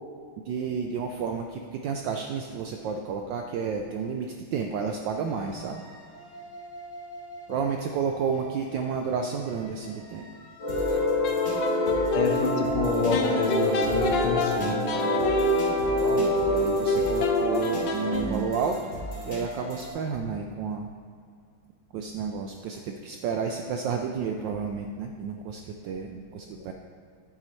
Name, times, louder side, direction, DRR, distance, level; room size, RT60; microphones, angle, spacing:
voice 1, 0.4-5.8 7.5-10.3 16.0-18.8 19.2-20.9 21.9-26.7, right 6 dB, 75° right, 4 dB, 1.0 m, -31 dB
sound 1, 5.2-19.9, equal, 30° left, 2.6 m, -40 dB
sound 2, 10.6-18.2, left 1 dB, 15° left, 1.5 m, -27 dB
sound 3, 10.9-12.3 13.1-18.6, left 2 dB, 70° left, 1.3 m, -28 dB
voice 2, 12.1-14.9, left 3 dB, 85° left, 2 dB, 1.9 m, -27 dB
9.8 x 8.5 x 3.1 m, 2.2 s
omnidirectional pair, 2.4 m